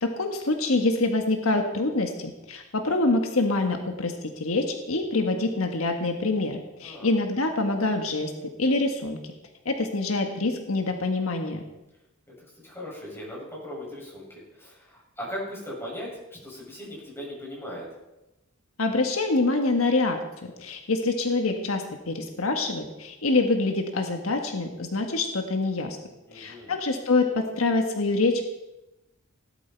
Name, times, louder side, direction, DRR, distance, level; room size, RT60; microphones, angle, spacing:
voice 1, 0.0-9.2 9.6-11.6 18.8-26.0 26.3-28.5, left 2 dB, 80° left, 4 dB, 1.4 m, -26 dB
voice 2, 6.8-7.2 12.6-17.9 26.3-26.8, equal, 10° left, -4 dB, 6.8 m, -38 dB
18.0 x 11.5 x 4.5 m, 0.98 s
head